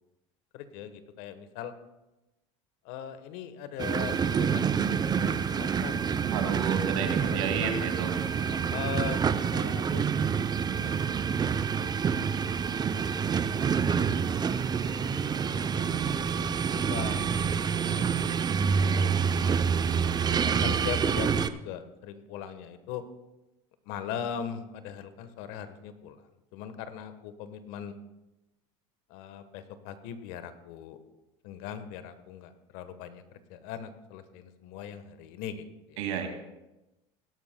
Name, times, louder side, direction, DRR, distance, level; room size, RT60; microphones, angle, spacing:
voice 1, 0.5-1.7 2.8-5.9 6.6-6.8 7.3-7.9 8.5-10.0 10.7-11.0 11.4-11.7 12.2-12.6 12.9-13.0 14.1-15.0 15.6-16.2 16.7-17.7 18.0-19.1 19.4-19.5 20.2-23.0 23.9-27.9 29.1-31.0 31.4-33.2 33.5-36.0, left 9 dB, 70° left, 11 dB, 1.2 m, -40 dB
sound 1, 3.8-21.5, right 6 dB, 25° right, 0.6 m, -27 dB
voice 2, 6.3-8.1 36.0-36.3, right 7 dB, 80° right, 4 dB, 2.3 m, -31 dB
17.0 x 12.5 x 2.2 m, 0.98 s
supercardioid pair, 90°, 15 cm